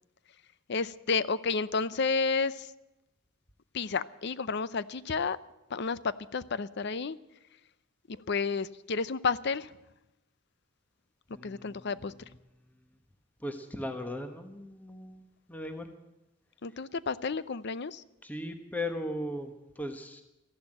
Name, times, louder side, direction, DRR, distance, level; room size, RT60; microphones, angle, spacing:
voice 1, 0.7-2.7 3.7-5.4 5.7-7.2 8.1-9.7 11.4-12.1 16.6-18.0, left 4 dB, 55° left, 17 dB, 0.6 m, -31 dB
voice 2, 11.3-11.9 13.4-15.9 18.2-20.2, left 1 dB, 10° left, 6 dB, 1.1 m, -38 dB
14.0 x 11.5 x 8.9 m, 0.95 s
head